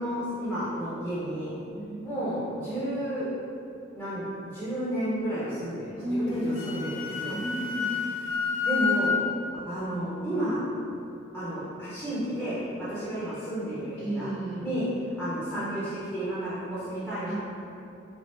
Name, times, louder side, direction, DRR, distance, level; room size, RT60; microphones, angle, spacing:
voice 1, 0.0-1.5 2.0-3.3 3.9-7.4 8.6-9.2 9.6-10.6 11.3-14.3 14.6-14.9 15.2-17.3, equal, 5° left, -12 dB, 0.6 m, -31 dB
voice 2, 1.7-2.0 6.0-6.8 7.2-8.0 14.0-14.6 17.3-17.4, equal, 75° right, -8 dB, 0.9 m, -33 dB
Wind instrument woodwind instrument, 6.3-9.2, left 5 dB, 85° left, 0.4 m, -29 dB
3.1 x 2.3 x 3.0 m, 2.7 s
head